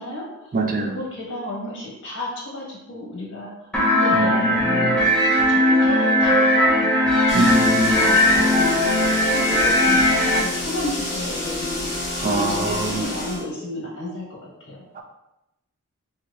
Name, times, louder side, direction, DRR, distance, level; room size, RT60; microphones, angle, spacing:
voice 1, 0.0-0.5 0.8-5.1 5.5-6.9 7.3-7.5 7.8-8.8 9.2-14.8, left 1 dB, 60° left, -4 dB, 1.4 m, -32 dB
voice 2, 0.5-1.0 4.2-5.0 7.3-8.0 12.2-13.0 15.0-15.1, right 2 dB, 40° right, 3 dB, 0.4 m, -24 dB
sound 1, 3.7-10.4, left 1 dB, 5° left, 0.7 m, -18 dB
sound 2, 7.3-13.4, left 2 dB, 30° left, 1.0 m, -29 dB
4.5 x 2.8 x 2.4 m, 0.91 s
head